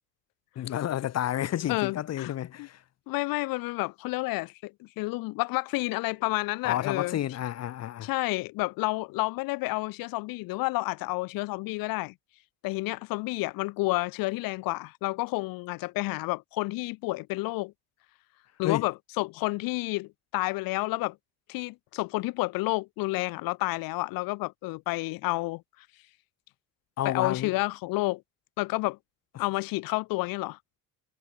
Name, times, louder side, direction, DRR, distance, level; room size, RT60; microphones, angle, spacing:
voice 1, 0.6-2.8 6.6-8.1 18.6-18.8 27.0-27.5 29.4-29.5, left 12 dB, 45° left, 5.3 m, -30 dB
voice 2, 1.7-2.3 2.6-2.7 3.1-7.2 8.0-12.1 12.6-17.7 18.6-21.2 21.5-25.6 27.0-28.2 28.6-29.0 29.4-30.6, left 22 dB, 75° left, 1.4 m, -30 dB
cardioid pair, 155°, 35 cm